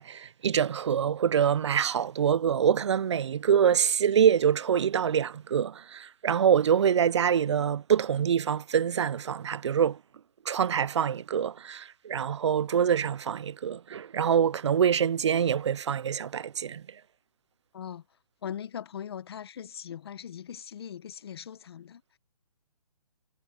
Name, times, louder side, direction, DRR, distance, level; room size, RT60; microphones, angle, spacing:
voice 1, 0.0-10.0 10.5-16.8, right 8 dB, 45° right, 0.5 m, -25 dB
voice 2, 18.4-22.2, left 9 dB, 40° left, 1.3 m, -40 dB
hypercardioid pair, 160°, 20 cm